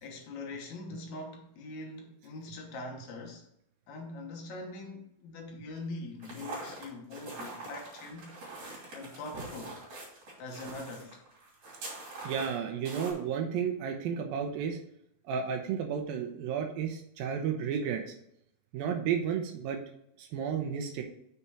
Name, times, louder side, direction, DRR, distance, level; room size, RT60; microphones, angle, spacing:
voice 1, 0.0-3.4 3.9-8.3 8.9-9.8 10.4-11.2, left 2 dB, 65° left, 2.0 m, -42 dB
sound 1, 6.2-13.1, right 2 dB, 50° right, 3.8 m, -43 dB
voice 2, 12.2-14.8 15.3-18.2 18.7-19.8 20.2-21.0, right 7 dB, 75° right, 2.5 m, -32 dB
6.6 x 6.0 x 4.8 m
omnidirectional pair, 4.5 m